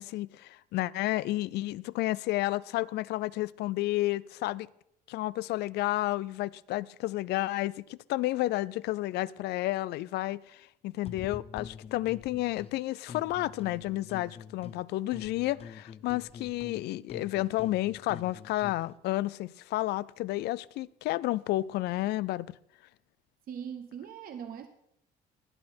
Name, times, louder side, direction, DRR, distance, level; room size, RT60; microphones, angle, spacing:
voice 1, 0.0-4.7 5.1-22.5, left 17 dB, 75° left, 0.4 m, -31 dB
sound 1, 11.0-12.7 13.1-14.8 15.1-18.8, left 6 dB, 35° left, 0.7 m, -46 dB
voice 2, 23.5-24.7, right 8 dB, 60° right, 1.0 m, -40 dB
19.0 x 8.6 x 4.4 m
cardioid pair, 110°, 17 cm